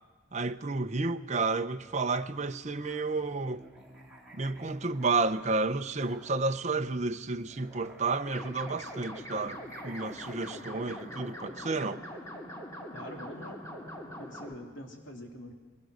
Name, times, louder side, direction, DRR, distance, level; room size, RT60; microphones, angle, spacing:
voice 1, 0.3-3.6 4.3-12.0, right 3 dB, 35° right, 0.7 m, -31 dB
Musical instrument, 1.7-11.9, right 1 dB, 5° right, 3.3 m, -54 dB
sound 1, 8.3-14.5, equal, 15° left, 2.7 m, -43 dB
voice 2, 12.9-13.6 14.2-15.5, left 1 dB, 65° left, 3.2 m, -44 dB
22.0 x 21.0 x 6.6 m
head